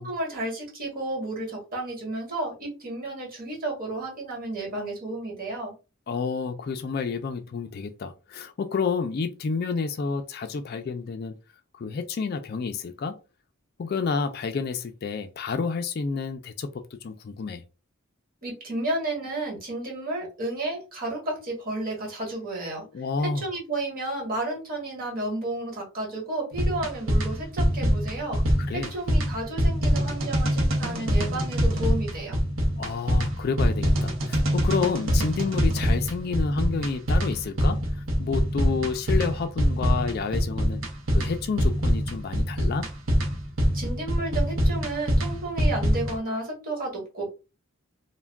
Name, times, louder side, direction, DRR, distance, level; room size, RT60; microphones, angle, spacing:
voice 1, 0.0-5.7 18.4-22.8 23.2-28.4 28.7-32.4 43.7-47.3, right 2 dB, 45° right, 1.2 m, -32 dB
voice 2, 6.1-11.4 11.8-13.2 13.8-17.6 22.9-23.4 28.3-28.4 28.7-28.9 32.8-40.8 41.1-42.9, left 5 dB, 50° left, 0.3 m, -30 dB
sound 1, 26.5-46.2, equal, 70° right, 0.7 m, -24 dB
2.3 x 2.1 x 3.4 m
head